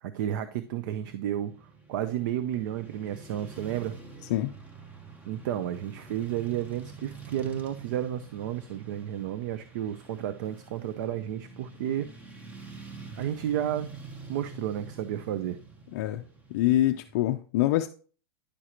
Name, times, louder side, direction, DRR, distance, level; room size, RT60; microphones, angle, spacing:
voice 1, 0.0-3.9 5.3-12.1 13.2-13.9 14.3-15.6, right 11 dB, 50° right, 0.5 m, -32 dB
Motorcycle / Traffic noise roadway noise, 0.7-17.3, right 5 dB, 10° right, 0.8 m, -47 dB
voice 2, 15.9-16.2 16.5-17.9, left 14 dB, 45° left, 0.4 m, -25 dB
10.0 x 6.2 x 2.9 m
supercardioid pair, 160°, 14 cm